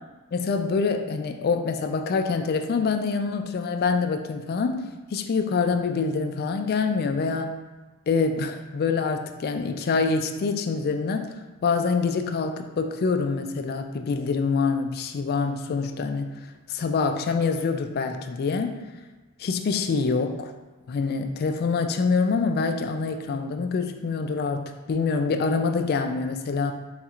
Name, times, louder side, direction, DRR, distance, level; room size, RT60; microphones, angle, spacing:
voice 1, 0.3-7.6 8.1-11.3 11.6-16.4 16.7-18.8 19.4-20.5 20.9-26.7, left 4 dB, 45° left, 6 dB, 0.3 m, -25 dB
3.9 x 2.4 x 4.3 m, 1.2 s
head